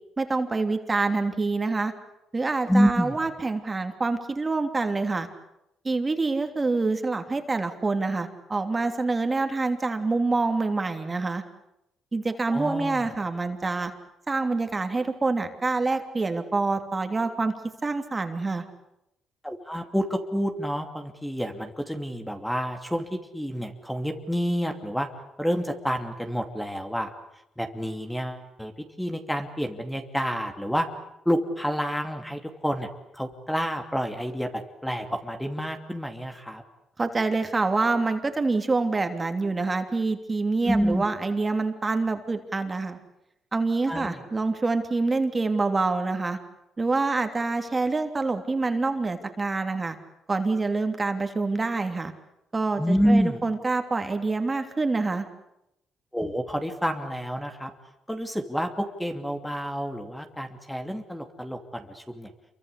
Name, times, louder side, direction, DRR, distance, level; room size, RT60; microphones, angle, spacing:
voice 1, 0.2-1.9 2.3-5.3 5.8-11.4 12.1-13.9 14.3-17.5 17.8-18.6 37.0-43.0 43.5-46.4 46.8-50.0 50.3-52.1 52.5-55.2, right 3 dB, 25° right, 6 dB, 3.0 m, -26 dB
voice 2, 2.7-3.2 12.5-13.1 19.4-25.1 25.4-27.1 27.6-28.7 29.0-30.9 31.2-32.9 33.1-36.6 40.6-41.0 43.9-44.2 52.8-53.4 56.1-57.7 58.1-62.3, equal, 5° left, 5 dB, 2.7 m, -28 dB
28.0 x 23.5 x 8.4 m, 0.86 s
cardioid pair, 90°, 0 cm